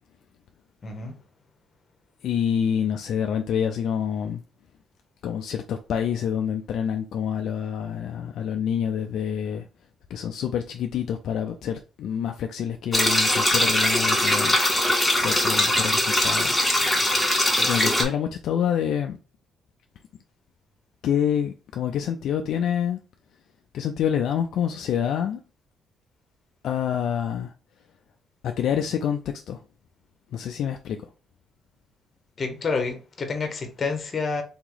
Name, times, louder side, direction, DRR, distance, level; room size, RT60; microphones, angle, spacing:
voice 1, 0.8-1.2 32.4-34.4, left 4 dB, 45° left, 1.1 m, -28 dB
voice 2, 2.2-4.4 5.2-9.7 10.1-14.6 15.2-16.6 17.6-19.2 21.0-23.0 23.7-25.4 26.6-27.5 28.4-29.2 29.5-29.6 30.3-31.0, left 8 dB, 75° left, 0.4 m, -27 dB
sound 1, 12.9-18.0, left 1 dB, 5° left, 1.5 m, -21 dB
3.6 x 2.9 x 3.9 m
cardioid pair, 90°, 0 cm